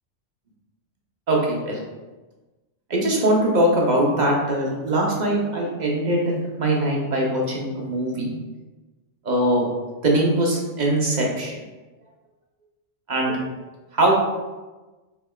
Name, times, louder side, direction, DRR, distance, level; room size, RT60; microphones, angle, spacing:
voice 1, 1.3-1.8 2.9-8.3 9.2-9.7 10.0-11.5 13.1-13.4 13.9-14.2, right 1 dB, 40° right, -2 dB, 0.9 m, -21 dB
5.5 x 3.3 x 2.4 m, 1.2 s
omnidirectional pair, 1.3 m